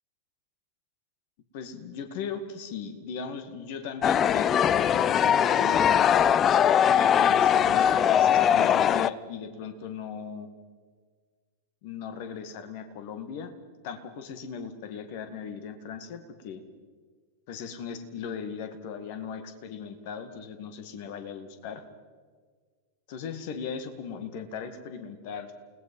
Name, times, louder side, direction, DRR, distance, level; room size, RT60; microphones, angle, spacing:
voice 1, 1.5-6.0 6.8-10.5 11.8-13.5 13.8-16.6 17.5-21.8 23.1-25.5, left 6 dB, 50° left, 9 dB, 2.1 m, -38 dB
sound 1, 4.0-9.1, left 9 dB, 25° left, 0.5 m, -21 dB
29.0 x 18.5 x 5.5 m, 1.5 s
figure-of-eight pair, 90°, 0 cm